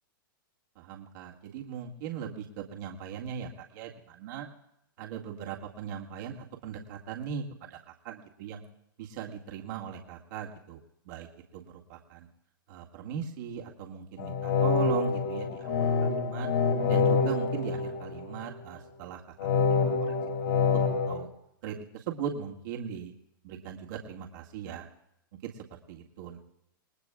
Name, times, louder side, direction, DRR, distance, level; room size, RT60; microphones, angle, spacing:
voice 1, 0.8-4.5 5.0-8.6 9.0-10.8 11.1-11.3 11.5-12.3 12.7-16.5 16.9-20.1 20.7-20.8 21.1-21.3 21.6-23.1 23.4-24.9 25.4-26.4, right 8 dB, 60° right, -1 dB, 2.0 m, -39 dB
sound 1, 14.2-18.5 19.4-21.2, left 5 dB, 70° left, 5.8 m, -27 dB
27.5 x 19.5 x 2.4 m, 0.79 s
hypercardioid pair, 120°, 12 cm